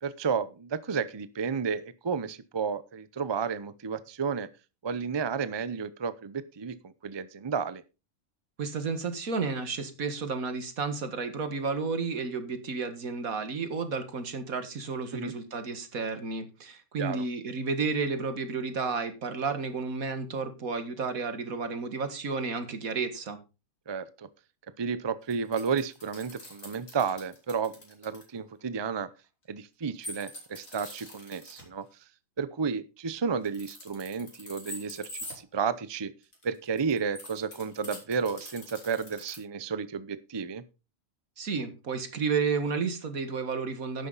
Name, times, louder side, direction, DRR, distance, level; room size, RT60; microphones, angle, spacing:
voice 1, 0.0-4.5 4.8-7.8 15.1-15.3 17.0-17.2 23.9-24.3 24.8-29.1 29.5-31.8 32.4-36.1 36.4-40.6, right 6 dB, 30° right, 15 dB, 0.5 m, -32 dB
voice 2, 8.6-23.4 41.4-44.1, right 4 dB, 80° right, 9 dB, 2.1 m, -32 dB
sound 1, 25.3-28.2 30.0-31.6 33.4-35.4 36.2-39.4, left 1 dB, 70° left, 5.2 m, -44 dB
11.5 x 9.7 x 4.0 m, 0.29 s
omnidirectional pair, 1.4 m